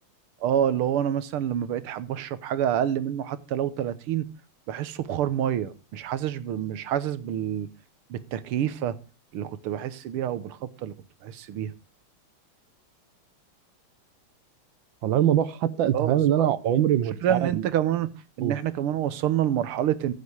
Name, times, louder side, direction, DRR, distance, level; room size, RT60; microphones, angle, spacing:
voice 1, 0.4-4.3 4.7-7.7 8.1-9.0 9.3-10.9 11.2-11.7 15.9-16.9 17.2-18.1 18.4-20.1, right 10 dB, 85° right, 1.8 m, -27 dB
voice 2, 15.0-17.7 18.4-18.5, right 11 dB, 70° right, 1.5 m, -23 dB
15.0 x 6.5 x 5.0 m
omnidirectional pair, 2.4 m